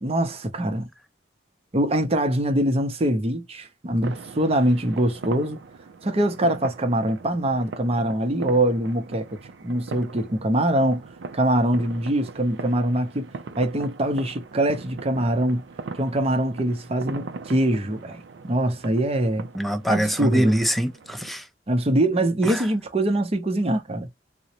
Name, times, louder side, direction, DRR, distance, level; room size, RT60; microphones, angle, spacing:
voice 1, 0.0-0.9 1.7-5.6 6.0-11.0 11.3-13.3 13.6-15.6 15.9-19.5 19.9-20.6 21.7-24.1, right 1 dB, 35° right, 0.7 m, -23 dB
sound 1, 4.0-21.3, right 4 dB, 80° right, 0.5 m, -40 dB
voice 2, 19.5-21.5 22.4-22.7, equal, ahead, 0.5 m, -24 dB
3.8 x 2.1 x 2.8 m
head